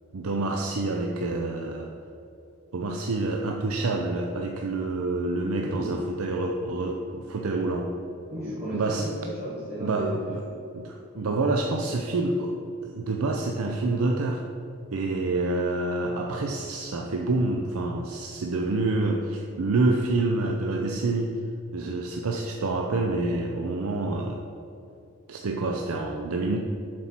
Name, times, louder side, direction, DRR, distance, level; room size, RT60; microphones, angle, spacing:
voice 1, 0.1-1.9 2.7-7.9 8.7-9.1 9.8-10.4 10.7-12.6 12.8-14.4 14.9-21.3 21.7-24.4 25.3-26.6, right 2 dB, 80° right, 2 dB, 0.5 m, -27 dB
voice 2, 5.6-6.0 8.3-10.6 11.1-11.4, equal, 30° right, -8 dB, 1.6 m, -35 dB
7.6 x 4.3 x 5.8 m, 2.7 s
head